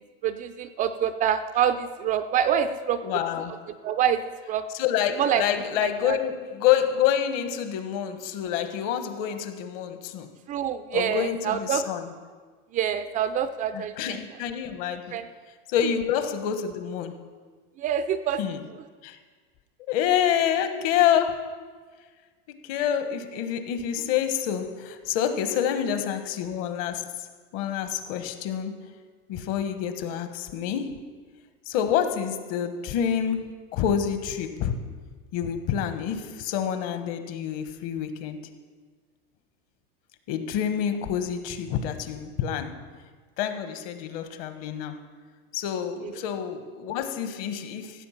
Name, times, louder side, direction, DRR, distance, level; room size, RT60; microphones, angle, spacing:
voice 1, 0.2-3.0 3.5-3.6 3.8-4.2 4.5-4.6 5.2-5.4 5.8-6.2 10.5-11.8 12.7-14.2 15.1-15.3 17.8-18.4, right 9 dB, 25° right, 10 dB, 0.4 m, -26 dB
voice 2, 3.0-3.5 4.7-10.3 10.9-12.1 13.7-15.2 15.7-17.2 18.4-18.6 19.0-19.2 19.9-21.5 22.5-27.1 27.5-28.7 29.3-31.0 31.7-34.8 35.3-38.4 40.3-42.8 43.4-45.0 45.5-48.1, left 9 dB, 50° left, 9 dB, 1.3 m, -27 dB
15.0 x 7.9 x 5.8 m, 1.5 s
supercardioid pair, 140°, 30 cm